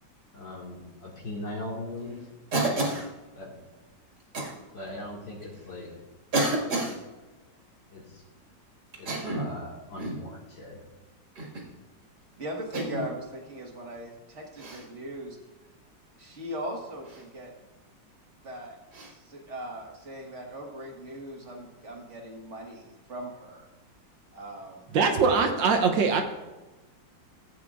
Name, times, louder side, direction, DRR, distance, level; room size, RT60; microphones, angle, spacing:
voice 1, 0.3-2.2 3.3-3.5 4.7-5.9 7.9-8.2 9.0-10.8, left 1 dB, 75° left, -4 dB, 2.7 m, -39 dB
Cough, 2.5-3.1 4.3-4.5 5.4-5.5 6.3-7.0 8.9-9.6 10.0-10.3 11.4-11.7 12.7-13.1 14.6-14.8 17.1-17.2 18.9-19.1, right 2 dB, 60° right, 2.5 m, -29 dB
voice 2, 12.4-15.4 16.2-17.5 18.4-18.8 19.1-23.7 24.3-24.9 25.1-25.4, right 1 dB, 40° right, 0 dB, 1.8 m, -39 dB
voice 3, 24.9-26.2, right 5 dB, 80° right, 4 dB, 1.5 m, -22 dB
15.5 x 8.6 x 2.5 m, 1.1 s
omnidirectional pair, 2.0 m